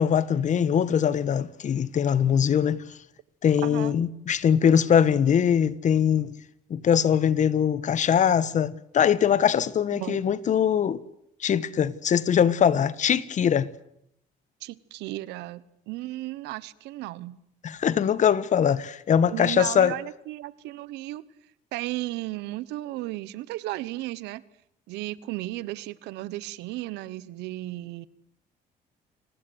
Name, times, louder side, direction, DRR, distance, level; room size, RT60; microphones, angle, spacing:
voice 1, 0.0-2.8 3.4-6.3 6.7-11.0 11.4-13.7 17.6-20.0, left 8 dB, 45° left, 1.4 m, -22 dB
voice 2, 3.6-4.0 9.9-10.2 14.6-17.4 19.3-21.2 21.7-24.4 24.9-28.1, right 17 dB, 90° right, 1.2 m, -35 dB
29.5 x 20.0 x 8.1 m
cardioid pair, 110°, 17 cm